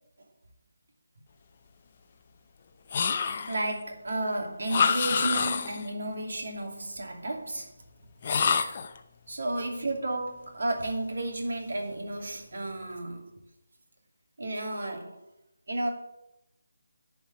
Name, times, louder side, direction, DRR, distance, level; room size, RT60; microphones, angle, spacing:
sound 1, 2.9-3.7 4.7-5.9 8.2-9.0, left 6 dB, 30° left, 0.7 m, -27 dB
voice 1, 3.5-7.7 9.3-13.4 14.4-15.2 15.7-15.9, right 2 dB, 70° right, 3 dB, 2.5 m, -32 dB
10.5 x 4.8 x 7.9 m, 0.85 s
figure-of-eight pair, 170°, 0 cm